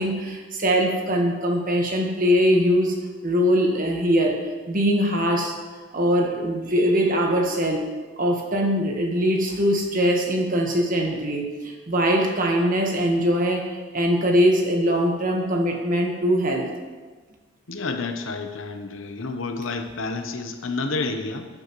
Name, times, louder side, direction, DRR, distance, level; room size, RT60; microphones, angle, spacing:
voice 1, 0.0-2.9 3.2-4.4 4.7-5.5 5.9-7.9 8.2-16.7, equal, 40° right, 1 dB, 1.4 m, -22 dB
voice 2, 17.7-21.5, left 3 dB, 75° left, 6 dB, 0.9 m, -29 dB
11.5 x 9.2 x 3.1 m, 1.4 s
head